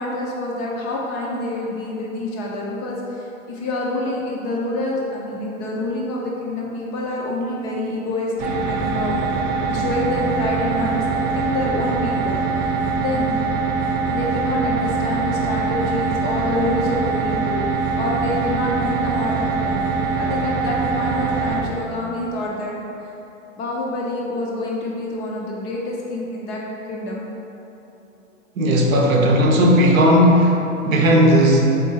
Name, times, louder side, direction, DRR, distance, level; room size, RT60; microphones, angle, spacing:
voice 1, 0.0-9.2 9.6-13.3 14.1-19.8 20.2-22.8 23.0-23.1 23.6-26.6 26.9-27.2, left 2 dB, 25° left, -3 dB, 0.3 m, -27 dB
sound 1, 8.4-21.6, right 4 dB, 40° right, 0.5 m, -23 dB
voice 2, 28.6-31.7, equal, 75° right, 0 dB, 0.7 m, -15 dB
3.7 x 3.7 x 2.7 m, 2.9 s
hypercardioid pair, 100°, 41 cm